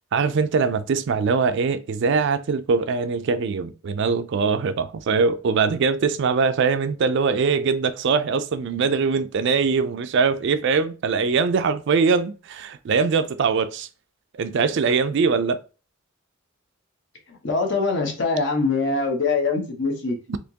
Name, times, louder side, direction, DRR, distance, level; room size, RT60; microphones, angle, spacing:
voice 1, 0.1-13.9 14.3-15.6 20.3-20.4, right 5 dB, 60° right, 0.4 m, -22 dB
voice 2, 17.3-20.2, left 3 dB, 60° left, 1.0 m, -23 dB
4.2 x 2.9 x 2.8 m
head